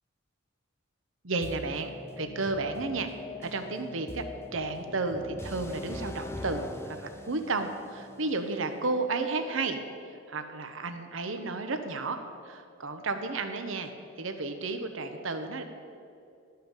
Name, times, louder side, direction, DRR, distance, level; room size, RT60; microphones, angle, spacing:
voice 1, 1.2-1.9 2.2-3.1 3.4-4.2 4.5-9.8 10.3-12.2 12.4-13.9 14.2-15.6, right 3 dB, 70° right, 7 dB, 0.9 m, -32 dB
sound 1, 1.4-9.3, left 2 dB, 10° left, 0.4 m, -43 dB
12.5 x 5.8 x 7.2 m, 2.6 s
head